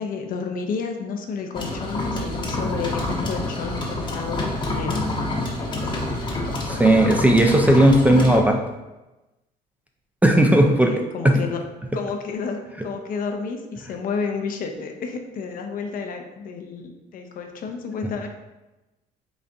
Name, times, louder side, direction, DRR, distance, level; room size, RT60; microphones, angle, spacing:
voice 1, 0.0-5.0 5.6-6.1 10.5-11.6 11.9-18.3, left 5 dB, 55° left, 4 dB, 0.5 m, -31 dB
sound 1, 1.5-8.4, left 2 dB, 30° left, 0.8 m, -27 dB
voice 2, 6.7-8.6 10.2-10.9 11.2-11.4, right 1 dB, 10° right, 2 dB, 0.3 m, -16 dB
4.0 x 2.5 x 3.4 m, 1.0 s
cardioid pair, 110°, 17 cm